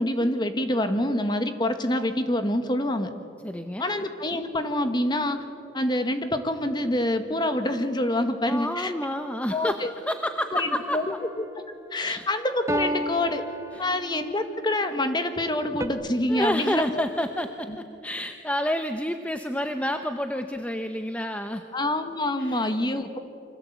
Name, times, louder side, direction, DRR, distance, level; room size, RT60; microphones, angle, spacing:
voice 1, 0.0-3.1 3.8-5.4 5.7-8.9 9.5-9.9 10.5-11.2 11.9-13.4 13.8-17.0 21.7-23.2, left 1 dB, 25° left, 7 dB, 1.7 m, -26 dB
voice 2, 3.4-3.9 8.5-11.0 12.0-12.3 13.7-13.9 16.3-21.7 22.4-22.7, left 1 dB, 10° left, 6 dB, 0.9 m, -29 dB
sound 1, 10.6-11.3 12.7-14.3 15.8-15.9, equal, 15° right, 1.3 m, -32 dB
28.0 x 25.5 x 8.2 m, 2.6 s
head